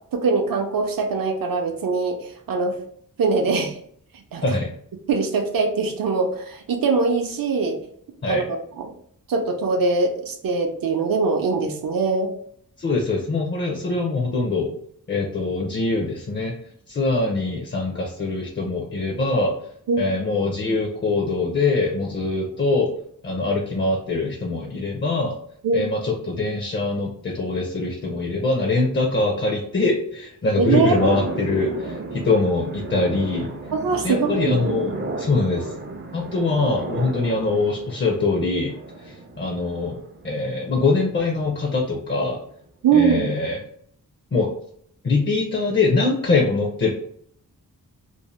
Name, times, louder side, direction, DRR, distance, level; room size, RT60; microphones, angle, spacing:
voice 1, 0.1-2.7 3.2-3.8 4.3-4.6 5.1-7.8 8.2-8.4 8.8-8.9 9.3-12.3 19.9-20.0 25.6-25.8 30.6-31.2 33.7-34.5 42.8-43.3, right 4 dB, 75° right, 4 dB, 0.6 m, -22 dB
voice 2, 12.8-14.7 15.1-16.5 16.9-19.5 20.0-22.9 23.2-25.4 25.7-33.5 34.0-35.7 36.1-38.7 39.0-42.4 42.9-43.6 44.3-44.5 45.0-46.9, left 3 dB, 35° left, -1 dB, 0.5 m, -23 dB
sound 1, 30.9-41.2, right 3 dB, 35° right, 0.4 m, -33 dB
2.6 x 2.0 x 3.0 m, 0.66 s
wide cardioid pair, 120°, 35 cm